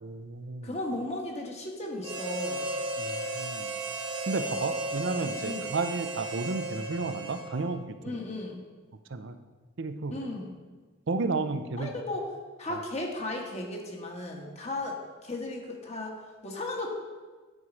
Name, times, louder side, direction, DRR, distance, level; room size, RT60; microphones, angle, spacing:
voice 1, 0.0-0.8 3.0-3.7 4.3-8.2 9.1-9.4 9.8-10.3 11.1-11.9 12.7-12.8, right 3 dB, 60° right, 10 dB, 0.6 m, -32 dB
voice 2, 0.6-2.6 5.4-5.7 8.0-8.6 10.1-10.5 11.8-12.3 12.6-16.1 16.4-16.9, left 2 dB, 30° left, 1 dB, 1.3 m, -35 dB
Harmonica, 2.0-7.8, right 2 dB, 25° right, 1.0 m, -35 dB
10.0 x 4.7 x 6.2 m, 1.4 s
head